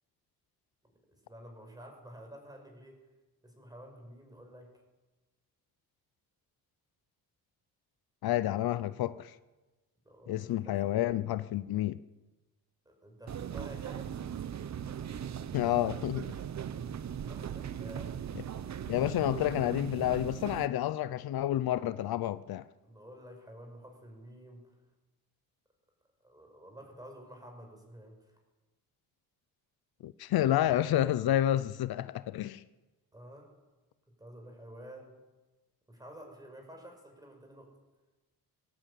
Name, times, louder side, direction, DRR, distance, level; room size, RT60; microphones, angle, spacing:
voice 1, 0.8-3.0 3.4-4.7 10.0-11.0 12.8-14.1 17.2-18.3 19.1-19.2 22.8-24.8 26.2-28.4 33.1-33.5 34.2-35.1 35.9-37.7, equal, 10° right, 6.2 m, -50 dB
voice 2, 8.2-9.3 10.3-12.0 15.5-16.3 18.4-18.5 18.9-22.7 30.0-32.6, left 13 dB, 75° left, 0.7 m, -29 dB
sound 1, 13.3-20.7, right 9 dB, 45° right, 0.9 m, -39 dB
21.5 x 17.0 x 8.5 m
cardioid pair, 140°, 37 cm